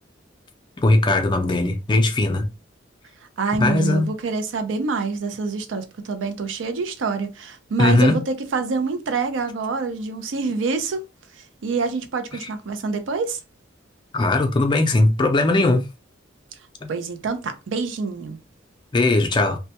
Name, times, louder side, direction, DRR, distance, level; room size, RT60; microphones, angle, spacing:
voice 1, 0.8-2.5 3.6-4.1 7.8-8.2 14.1-15.8 16.8-16.9 18.9-19.6, left 2 dB, 25° left, 0.4 m, -19 dB
voice 2, 3.4-11.0 11.6-13.4 16.9-18.4, right 4 dB, 85° right, 0.5 m, -26 dB
2.2 x 2.1 x 2.8 m
head